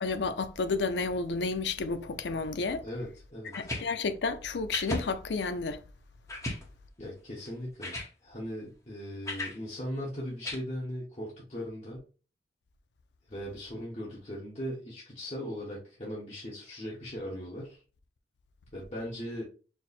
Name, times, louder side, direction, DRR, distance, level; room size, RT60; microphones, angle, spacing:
voice 1, 0.0-2.8 3.5-5.8, left 4 dB, 85° left, 0.5 m, -31 dB
voice 2, 2.8-3.5 6.4-6.5 7.0-7.9 8.2-12.1 13.3-17.8 18.7-19.4, equal, 35° left, 1.1 m, -39 dB
sound 1, 3.5-3.9 4.7-5.1 5.6-5.7 6.3-6.6 7.5-7.6 7.8-8.1 9.3-9.6 10.4-10.6, left 1 dB, 20° left, 0.8 m, -34 dB
4.5 x 2.1 x 4.1 m
head